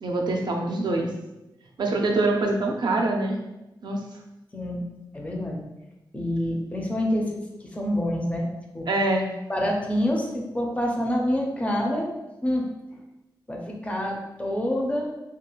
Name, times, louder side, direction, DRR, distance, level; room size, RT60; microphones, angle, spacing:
voice 1, 0.0-1.1 1.8-3.4 3.8-4.0 8.9-9.3, right 2 dB, 65° right, 2 dB, 0.3 m, -24 dB
voice 2, 5.1-5.6 6.1-7.4 7.7-8.9 9.5-12.1 12.4-12.6 13.5-15.1, left 1 dB, 15° left, 0 dB, 0.4 m, -27 dB
2.3 x 2.2 x 2.9 m, 0.97 s
wide cardioid pair, 155°, 8 cm